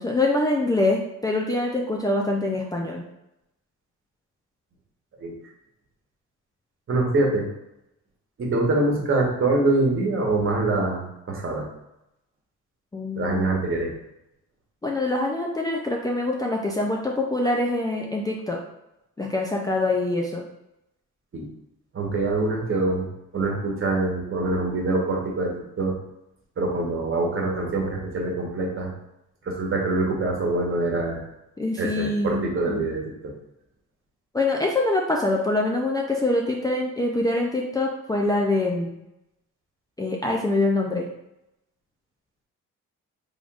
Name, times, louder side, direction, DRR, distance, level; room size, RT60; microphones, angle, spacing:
voice 1, 0.0-3.1 12.9-13.4 14.8-18.6 19.2-20.4 31.6-32.8 34.3-39.0 40.0-41.1, left 2 dB, 10° left, -1 dB, 0.4 m, -24 dB
voice 2, 6.9-7.4 8.4-11.0 11.3-11.7 13.1-13.9 21.3-21.5 21.9-23.1 23.3-25.5 25.8-25.9 26.6-28.9 29.4-31.2 31.8-33.3, right 2 dB, 45° right, -1 dB, 1.2 m, -24 dB
3.8 x 3.6 x 2.4 m, 0.88 s
cardioid pair, 90°, 30 cm